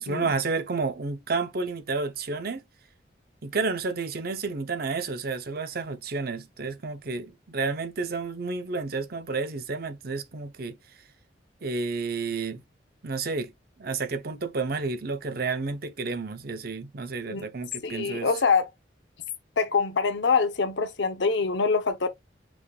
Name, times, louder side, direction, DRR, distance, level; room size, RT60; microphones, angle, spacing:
voice 1, 0.0-2.6 3.4-10.8 11.6-12.6 13.0-13.5 13.8-18.3, right 4 dB, 55° right, 0.7 m, -31 dB
voice 2, 17.8-18.7 19.6-22.1, left 5 dB, 75° left, 0.8 m, -24 dB
6.2 x 3.4 x 2.4 m
head